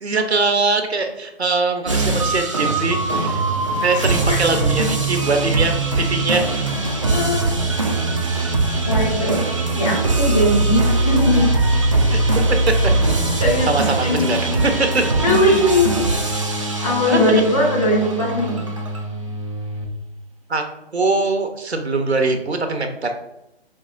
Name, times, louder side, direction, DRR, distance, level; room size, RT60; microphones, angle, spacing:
voice 1, 0.0-3.4 3.8-6.7 12.1-12.2 12.5-12.6 13.7-14.5 14.9-15.0 17.1-17.4 20.5-20.6 20.9-23.1, right 3 dB, 80° right, 6 dB, 0.8 m, -22 dB
sound 1, 1.9-19.9, right 2 dB, 30° right, 0.4 m, -21 dB
voice 2, 7.1-7.5 8.1-8.3 8.8-9.4 9.7-11.5 13.4-14.5 15.1-16.0 16.8-18.6, left 1 dB, 35° left, -3 dB, 1.3 m, -20 dB
5.3 x 2.9 x 2.4 m, 0.86 s
figure-of-eight pair, 145°, 32 cm